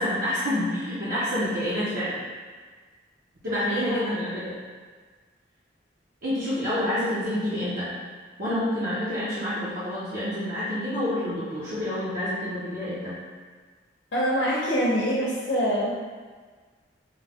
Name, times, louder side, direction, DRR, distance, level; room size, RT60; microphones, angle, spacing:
voice 1, 0.0-2.2 3.4-4.5 6.2-7.9 8.4-13.2, left 1 dB, 50° right, -10 dB, 0.8 m, -28 dB
voice 2, 3.5-4.0 14.1-15.9, equal, 75° left, -6 dB, 0.7 m, -25 dB
5.2 x 2.2 x 3.5 m, 1.5 s
head